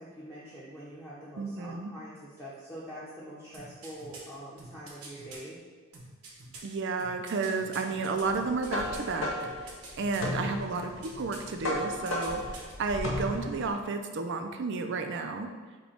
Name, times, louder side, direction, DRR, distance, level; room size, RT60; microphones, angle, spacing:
voice 1, 0.0-5.6 10.7-10.9, equal, 10° left, -9 dB, 0.7 m, -45 dB
voice 2, 1.4-1.9 6.6-9.3 9.6-15.5, right 4 dB, 55° right, 6 dB, 0.4 m, -32 dB
sound 1, 3.5-5.4 5.9-9.1 9.4-10.3 10.7-11.5 11.8-12.7 13.0-13.1, right 3 dB, 85° right, 1.0 m, -47 dB
sound 2, 8.3-13.7, left 2 dB, 60° left, 0.7 m, -35 dB
5.3 x 2.2 x 4.3 m, 1.5 s
head